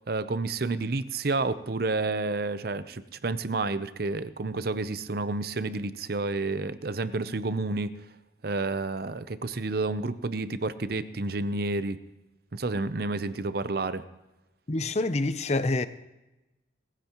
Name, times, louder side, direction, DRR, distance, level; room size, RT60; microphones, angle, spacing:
voice 1, 0.1-7.9 8.4-12.0 12.5-14.0, right 3 dB, 55° right, 0.7 m, -30 dB
voice 2, 14.7-15.9, left 2 dB, 35° left, 0.6 m, -26 dB
20.5 x 15.0 x 3.0 m
head